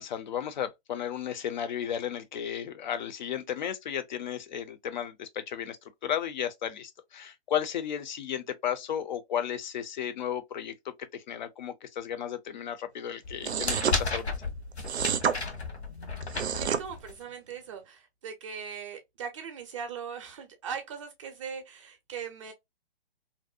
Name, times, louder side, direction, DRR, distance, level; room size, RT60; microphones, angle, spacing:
voice 1, 0.0-5.8 6.0-14.3, left 9 dB, 45° left, 0.5 m, -34 dB
sound 1, 13.3-17.2, left 3 dB, 80° left, 1.1 m, -33 dB
sound 2, 13.4-14.0 14.8-15.4 16.2-16.8, right 7 dB, 85° right, 0.5 m, -28 dB
voice 2, 16.4-22.5, right 7 dB, 30° right, 0.5 m, -40 dB
2.6 x 2.0 x 2.4 m
figure-of-eight pair, 130°, 32 cm